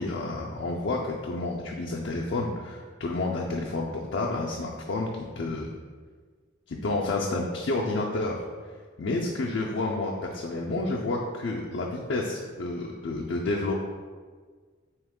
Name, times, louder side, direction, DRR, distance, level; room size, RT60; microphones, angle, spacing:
voice 1, 0.0-5.1 5.4-5.7 6.7-8.5 9.0-13.7, left 2 dB, 65° left, -2 dB, 0.4 m, -30 dB
4.0 x 3.0 x 3.5 m, 1.5 s
head